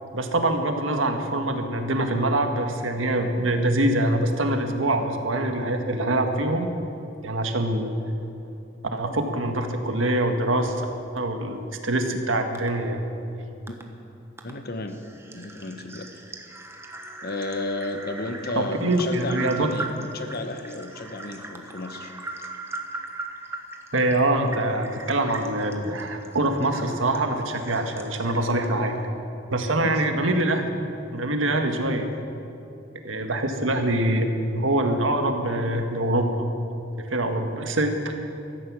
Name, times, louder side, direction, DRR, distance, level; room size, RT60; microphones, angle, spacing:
voice 1, 0.1-6.7 7.2-7.9 8.9-10.9 11.1-13.0 18.5-19.7 23.9-28.9 29.5-30.7 31.1-32.1 33.0-36.5 37.0-38.4, right 1 dB, 85° right, 5 dB, 1.6 m, -24 dB
sound 1, 12.6-12.7 13.7-13.8 14.4-14.5 14.9-29.1, right 2 dB, 15° right, 1.2 m, -40 dB
voice 2, 14.4-15.0 15.3-16.1 17.2-22.1 29.8-30.0, left 2 dB, 50° left, 7 dB, 1.1 m, -33 dB
16.5 x 14.0 x 6.3 m, 2.7 s
head